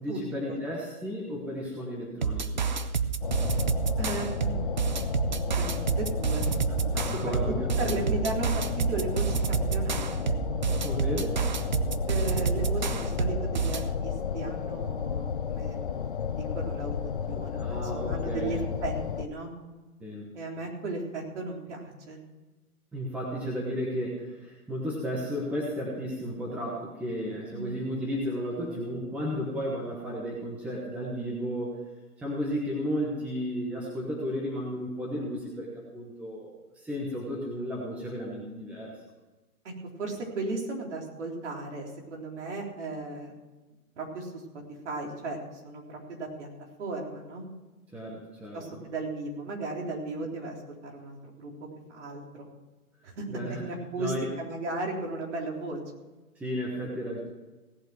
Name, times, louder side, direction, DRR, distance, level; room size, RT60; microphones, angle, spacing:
voice 1, 0.0-2.7 6.9-7.9 10.8-11.5 17.6-18.5 20.0-20.3 22.9-31.8 32.2-39.0 47.9-48.6 53.3-53.6 54.0-54.3 56.4-57.2, equal, 5° right, -3 dB, 1.0 m, -33 dB
sound 1, 2.2-13.9, right 5 dB, 35° right, 0.5 m, -29 dB
sound 2, 3.2-19.3, left 7 dB, 35° left, 0.5 m, -33 dB
voice 2, 4.0-4.5 5.3-5.7 6.0-6.5 6.9-7.4 7.8-10.4 12.1-17.0 17.3-19.5 20.3-22.2 27.5-27.8 39.6-39.7 40.0-43.3 44.0-44.4 44.8-46.5 46.8-47.4 48.5-52.5 53.0-55.8, right 2 dB, 50° right, 0 dB, 3.9 m, -36 dB
17.0 x 7.9 x 6.1 m, 1.2 s
hypercardioid pair, 150°, 45 cm